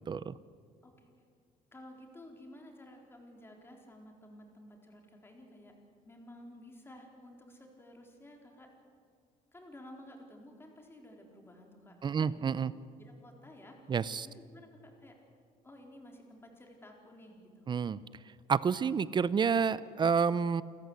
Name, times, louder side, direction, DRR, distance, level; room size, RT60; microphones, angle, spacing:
voice 1, 1.7-5.7 6.0-8.7 9.5-12.4 13.0-13.8 14.2-15.2 15.6-17.7, left 1 dB, 15° left, 2 dB, 4.0 m, -53 dB
voice 2, 12.0-12.7 13.9-14.3 17.7-18.0 18.5-20.6, right 6 dB, 35° right, 18 dB, 0.6 m, -29 dB
29.0 x 14.0 x 8.1 m, 2.2 s
cardioid pair, 115°, 14 cm